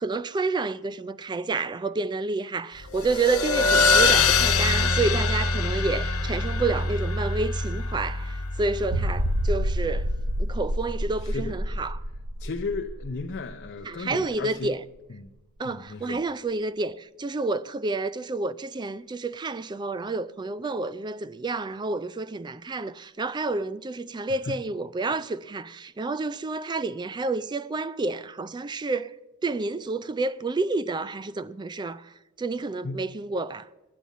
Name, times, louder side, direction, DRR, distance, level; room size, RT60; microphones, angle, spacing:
voice 1, 0.0-10.1 10.4-12.0 13.8-14.8 15.6-29.1 29.4-33.7, right 3 dB, 20° right, 0.3 m, -29 dB
sound 1, 2.9-10.0, left 4 dB, 75° left, 1.1 m, -24 dB
sound 2, 8.9-14.3 14.6-14.7 15.3-15.4, equal, 75° right, 0.9 m, -29 dB
voice 2, 11.2-11.6 12.4-14.8 15.1-15.4 15.6-16.2 24.4-24.6 32.8-33.1, left 4 dB, 50° left, 0.7 m, -34 dB
10.5 x 8.6 x 8.2 m
head